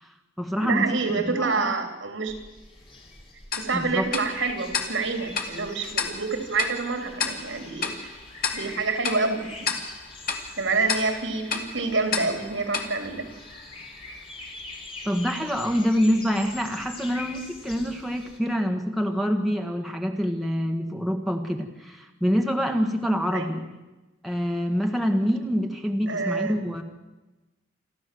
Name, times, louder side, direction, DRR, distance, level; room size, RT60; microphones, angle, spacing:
voice 1, 0.0-1.7 3.7-4.0 15.0-23.7 24.2-26.8, equal, ahead, 2 dB, 1.6 m, -26 dB
voice 2, 0.6-2.4 3.6-8.1 8.5-9.7 10.6-13.3 14.1-14.2 23.3-23.6 26.1-26.5, right 4 dB, 75° right, 5 dB, 3.5 m, -27 dB
sound 1, 2.3-18.4, left 3 dB, 30° left, 3.4 m, -44 dB
Tick-tock, 3.5-14.0, left 5 dB, 50° left, 2.3 m, -33 dB
28.0 x 13.0 x 7.7 m, 1.1 s
head